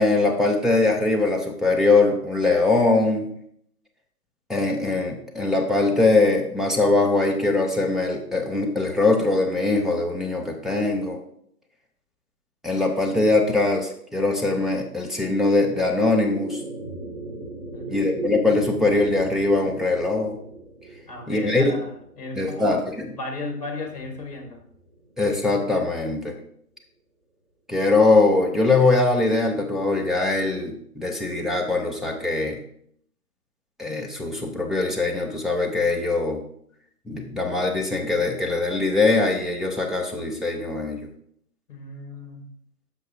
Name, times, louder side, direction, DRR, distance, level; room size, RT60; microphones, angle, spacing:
voice 1, 0.0-3.3 4.5-11.2 12.6-16.6 17.9-20.4 21.3-21.7 22.4-23.1 25.2-26.3 27.7-32.6 33.8-36.4 37.1-41.0, left 3 dB, ahead, 0 dB, 0.4 m, -22 dB
sound 1, 15.2-25.7, right 2 dB, 45° right, 2.2 m, -39 dB
voice 2, 17.7-18.3 21.1-22.8 23.2-24.6 41.7-42.5, left 2 dB, 25° left, 3 dB, 1.2 m, -35 dB
10.0 x 6.3 x 2.6 m, 0.69 s
figure-of-eight pair, 160°, 47 cm